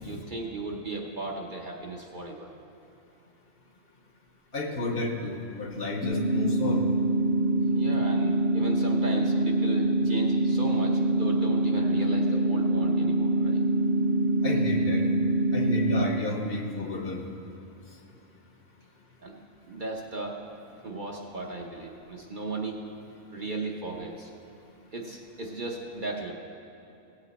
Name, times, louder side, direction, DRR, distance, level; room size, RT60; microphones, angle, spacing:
voice 1, 0.0-2.5 7.7-13.6 19.2-19.3 19.6-20.4 20.8-22.8 23.3-24.3 24.9-26.3, right 3 dB, 45° right, 0 dB, 0.9 m, -36 dB
voice 2, 4.5-6.8 14.4-15.0 15.5-17.2, left 2 dB, 50° left, 2 dB, 1.1 m, -31 dB
sound 1, 6.0-16.0, right 2 dB, 70° right, 2.6 m, -25 dB
16.5 x 8.2 x 4.0 m, 2.8 s
omnidirectional pair, 1.4 m